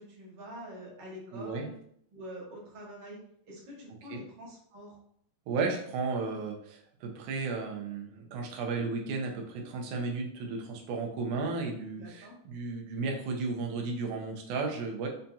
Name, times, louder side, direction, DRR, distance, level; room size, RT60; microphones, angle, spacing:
voice 1, 0.0-1.7 2.1-3.2 3.4-5.0 11.9-12.3, equal, 50° right, -5 dB, 1.5 m, -45 dB
voice 2, 1.3-1.7 4.1-4.2 5.5-15.1, right 4 dB, 90° right, 2 dB, 2.2 m, -34 dB
5.5 x 2.7 x 2.3 m, 0.67 s
omnidirectional pair, 3.5 m